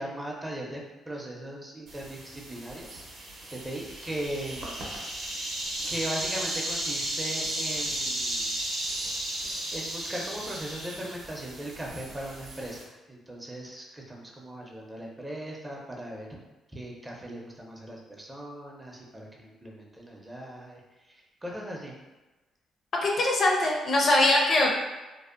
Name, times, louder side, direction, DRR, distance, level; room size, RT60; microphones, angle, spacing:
voice 1, 0.0-3.0 3.5-4.9 5.4-5.5 5.8-8.5 9.7-12.8 13.1-16.4 16.7-21.9, right 1 dB, 15° right, -1 dB, 0.5 m, -38 dB
sound 1, 1.9-12.8, right 1 dB, 65° right, 0.6 m, -34 dB
voice 2, 23.0-24.7, left 2 dB, 50° left, -1 dB, 0.5 m, -22 dB
2.6 x 2.0 x 2.4 m, 1.1 s
cardioid pair, 90°, 0 cm